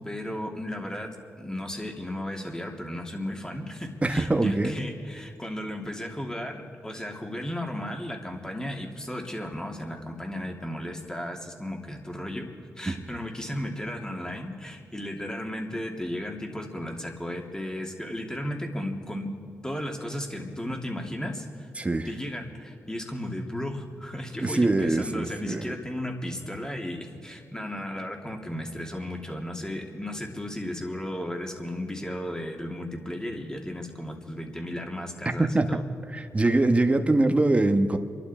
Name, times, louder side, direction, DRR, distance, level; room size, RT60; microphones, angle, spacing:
voice 1, 0.0-12.5 12.8-19.3 19.6-21.7 22.0-35.8, left 1 dB, 10° left, 1 dB, 2.9 m, -35 dB
voice 2, 4.0-4.8 12.9-13.0 21.8-22.1 24.4-25.7 35.4-35.8 36.1-38.0, right 2 dB, 25° right, 7 dB, 1.4 m, -23 dB
27.0 x 11.5 x 4.4 m, 2.4 s
supercardioid pair, 50°, 6 cm